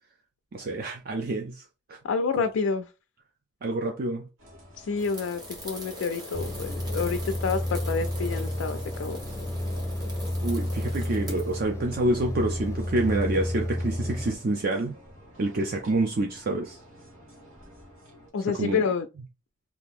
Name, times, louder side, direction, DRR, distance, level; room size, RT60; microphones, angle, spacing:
voice 1, 0.5-2.0 3.6-4.2 10.4-14.9 15.4-16.8 18.6-18.8, right 2 dB, 50° right, 0.5 m, -27 dB
voice 2, 2.0-2.9 4.8-9.2 18.3-19.1, left 5 dB, 85° left, 0.4 m, -28 dB
sound 1, 4.4-18.3, left 1 dB, 90° right, 1.2 m, -50 dB
sound 2, 5.0-11.5, equal, 20° right, 1.1 m, -42 dB
sound 3, 6.3-14.3, left 1 dB, 15° left, 0.4 m, -31 dB
2.8 x 2.5 x 3.5 m
head